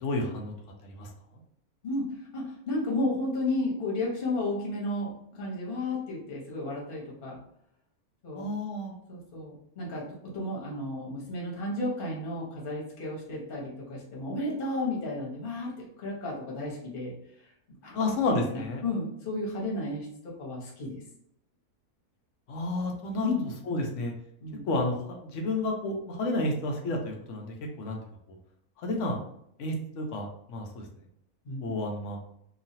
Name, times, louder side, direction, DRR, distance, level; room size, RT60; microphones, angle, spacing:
voice 1, 0.0-0.5 0.8-1.1 8.3-8.9 17.9-18.8 22.5-24.1 24.7-28.0 28.8-29.2 29.6-30.9 31.6-32.2, left 2 dB, 65° left, 1 dB, 0.9 m, -31 dB
voice 2, 2.3-7.4 8.2-8.5 9.1-17.1 17.8-18.0 18.5-21.0 23.2-23.5 24.4-24.6 31.4-31.7, left 2 dB, 40° left, -3 dB, 1.0 m, -33 dB
3.0 x 2.4 x 2.6 m, 0.72 s
omnidirectional pair, 1.6 m